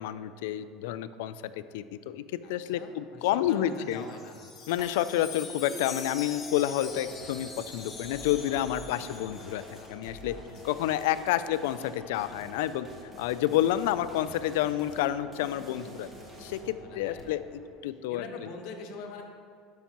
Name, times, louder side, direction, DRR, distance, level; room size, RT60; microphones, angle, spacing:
voice 1, 0.0-2.2 2.5-4.0 4.7-9.6 9.9-10.3 10.6-12.9 13.2-16.1 16.4-16.6 17.0-17.4 17.8-18.2, left 12 dB, 85° left, 14 dB, 0.3 m, -29 dB
voice 2, 2.4-4.4 8.7-11.0 16.6-17.4 18.1-19.2, left 4 dB, 65° left, 3 dB, 1.0 m, -45 dB
Wind chime, 3.6-9.9, left 5 dB, 30° left, 1.1 m, -44 dB
sound 1, 4.8-17.7, left 2 dB, 10° left, 2.1 m, -49 dB
sound 2, 6.9-16.6, right 1 dB, 15° right, 1.5 m, -50 dB
12.0 x 5.7 x 3.0 m, 2.3 s
supercardioid pair, 125°, 0 cm